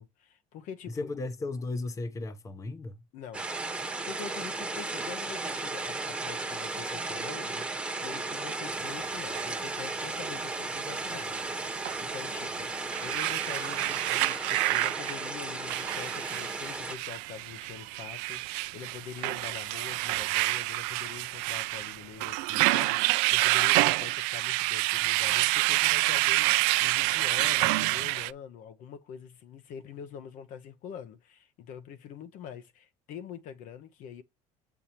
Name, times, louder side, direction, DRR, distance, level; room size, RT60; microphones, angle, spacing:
voice 1, 0.0-1.1 3.1-34.2, left 8 dB, 60° left, 0.9 m, -44 dB
voice 2, 0.9-3.0, left 3 dB, 20° left, 0.8 m, -35 dB
sound 1, 3.3-16.9, right 3 dB, 10° right, 1.1 m, -35 dB
sound 2, 9.3-9.5 11.8-12.0 12.6-28.3, right 21 dB, 85° right, 0.4 m, -28 dB
7.1 x 7.0 x 2.9 m
cardioid pair, 125°, 15 cm